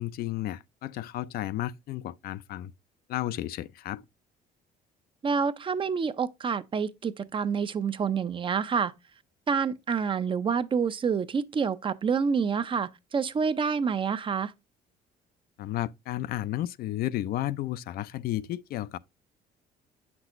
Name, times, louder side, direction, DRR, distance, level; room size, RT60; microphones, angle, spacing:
voice 1, 0.0-2.7 3.1-4.0 15.6-19.0, left 14 dB, 65° left, 0.4 m, -33 dB
voice 2, 5.2-8.9 9.5-14.5, right 6 dB, 30° right, 0.5 m, -28 dB
8.0 x 6.0 x 2.4 m
cardioid pair, 110°, 17 cm